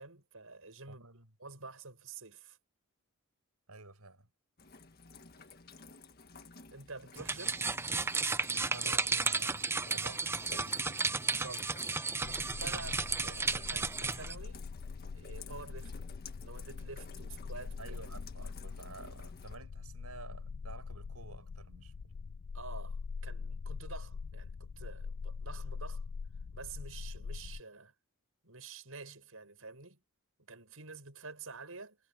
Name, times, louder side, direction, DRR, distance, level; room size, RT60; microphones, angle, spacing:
voice 1, 0.0-1.1 1.4-2.6 6.7-7.6 11.2-14.6 15.1-18.0 22.5-26.0 26.5-27.9 28.4-30.0 30.5-32.0, right 4 dB, 70° right, 6.6 m, -49 dB
voice 2, 0.9-1.3 3.7-4.3 8.7-10.8 17.8-22.3, right 3 dB, 90° right, 7.4 m, -51 dB
Rain, 4.6-19.6, left 4 dB, 45° left, 1.7 m, -53 dB
sound 1, 7.2-14.3, right 4 dB, 10° right, 0.5 m, -33 dB
sound 2, 12.2-27.6, left 5 dB, 70° left, 0.5 m, -43 dB
head